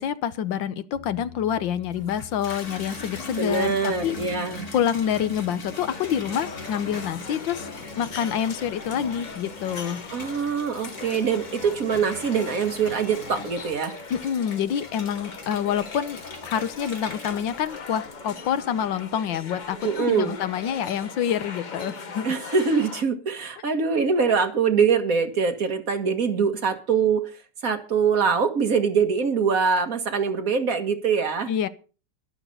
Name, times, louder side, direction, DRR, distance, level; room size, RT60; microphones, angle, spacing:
voice 1, 0.0-4.2 4.7-7.7 8.0-10.0 14.1-22.3 31.5-31.7, left 9 dB, 80° left, 1.6 m, -27 dB
Bass guitar, 0.9-7.2, left 7 dB, 10° left, 6.4 m, -49 dB
Water tap faucet / Bathtub (filling or washing), 1.8-18.8 19.2-19.8, left 2 dB, 55° left, 3.2 m, -41 dB
voice 2, 3.4-4.7 10.1-13.9 19.8-20.4 22.2-27.3 27.6-31.5, right 5 dB, 50° right, 2.1 m, -23 dB
sound 1, 5.9-23.0, left 4 dB, 35° left, 0.8 m, -40 dB
12.0 x 12.0 x 5.5 m
omnidirectional pair, 2.0 m